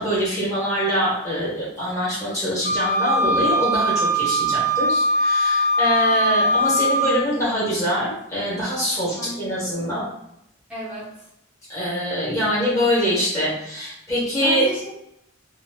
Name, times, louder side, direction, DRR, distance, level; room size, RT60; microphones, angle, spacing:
voice 1, 0.0-10.0 11.7-14.7, equal, 15° left, -7 dB, 1.2 m, -24 dB
Wind instrument woodwind instrument, 2.6-7.1, equal, 40° left, 0.6 m, -21 dB
voice 2, 6.1-6.5 8.5-8.6 9.1-9.4 9.8-9.9 10.7-11.3 14.4-14.9, equal, 5° right, -12 dB, 0.6 m, -33 dB
3.0 x 2.7 x 2.2 m, 0.79 s
head